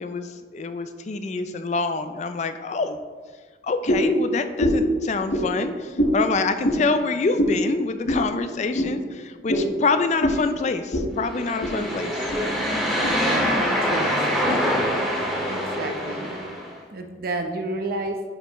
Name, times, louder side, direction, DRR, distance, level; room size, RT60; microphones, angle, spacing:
voice 1, 0.0-3.0 3.6-12.2, left 4 dB, 40° left, 9 dB, 0.4 m, -26 dB
sound 1, 3.9-4.1 4.6-4.9 5.3-5.5 6.0-6.2 6.6-6.8 7.4-7.6 8.1-8.2 8.7-8.9 9.5-9.7 10.2-10.4 10.9-11.1 11.4-11.8 12.3-12.4 13.0-13.1, equal, 75° left, 1.4 m, -23 dB
sound 2, 11.3-16.7, equal, 5° left, 2.1 m, -24 dB
voice 2, 13.8-14.6 15.5-16.5 16.9-18.3, right 2 dB, 55° right, 5 dB, 0.7 m, -31 dB
10.5 x 5.5 x 3.0 m, 1.5 s
head